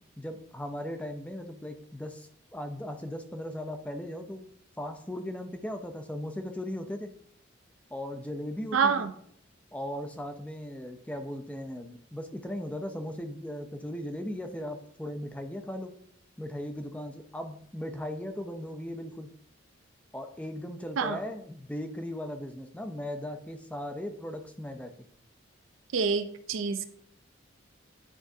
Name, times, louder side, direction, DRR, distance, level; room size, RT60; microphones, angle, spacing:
voice 1, 0.2-4.4 4.8-7.1 7.9-9.1 9.7-15.9 16.4-19.3 20.1-24.9, left 1 dB, 5° left, 6 dB, 0.4 m, -37 dB
voice 2, 8.7-9.1 21.0-21.2 25.9-26.9, right 5 dB, 85° right, 10 dB, 0.5 m, -27 dB
9.9 x 3.5 x 2.7 m, 0.66 s
head